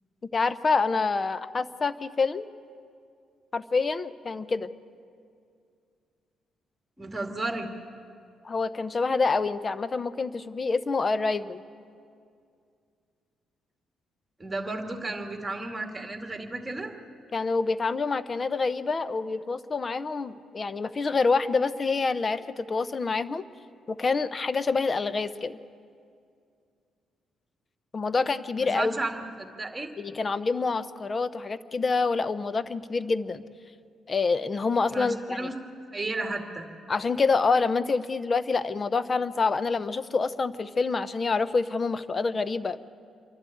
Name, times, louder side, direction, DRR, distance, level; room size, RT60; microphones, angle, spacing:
voice 1, 0.3-2.5 3.5-4.7 8.4-11.6 17.3-23.4 23.9-25.6 27.9-28.9 30.0-33.4 34.1-35.5 36.9-42.9, left 4 dB, 35° left, 15 dB, 0.7 m, -27 dB
voice 2, 7.0-7.7 14.4-16.9 28.6-29.9 34.9-35.5 35.9-36.7, right 2 dB, 15° right, 4 dB, 2.2 m, -33 dB
27.0 x 11.5 x 8.5 m, 2.4 s
cardioid pair, 90°, 0 cm